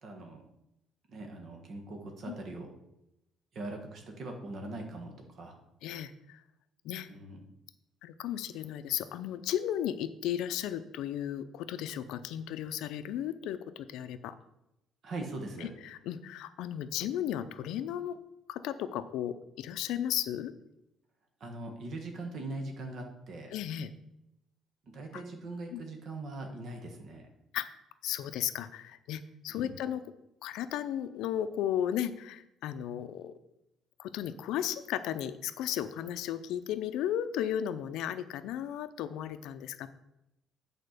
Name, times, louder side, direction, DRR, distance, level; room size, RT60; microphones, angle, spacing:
voice 1, 0.0-0.4 1.1-2.7 3.5-5.6 7.1-7.4 15.0-15.7 21.4-23.5 24.9-27.3 29.5-29.8, right 2 dB, 45° right, 3 dB, 1.3 m, -41 dB
voice 2, 5.8-6.4 6.8-7.1 8.0-14.3 15.6-18.2 18.5-20.5 23.5-23.9 25.1-25.2 25.7-25.8 27.5-27.7 28.0-30.0 30.4-33.3 34.0-39.9, left 10 dB, 80° left, 11 dB, 0.5 m, -35 dB
8.9 x 4.4 x 6.5 m, 0.87 s
cardioid pair, 170°, 0 cm